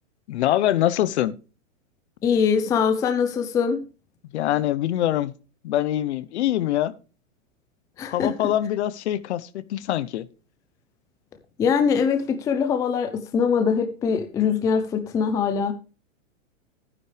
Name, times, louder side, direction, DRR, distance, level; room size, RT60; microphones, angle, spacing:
voice 1, 0.3-1.4 4.3-5.3 5.6-6.9 8.1-10.3, left 13 dB, 55° left, 0.9 m, -24 dB
voice 2, 2.2-3.8 8.0-8.3 11.6-15.7, left 6 dB, 10° left, 0.5 m, -22 dB
11.5 x 9.6 x 3.2 m
hypercardioid pair, 155°, 40 cm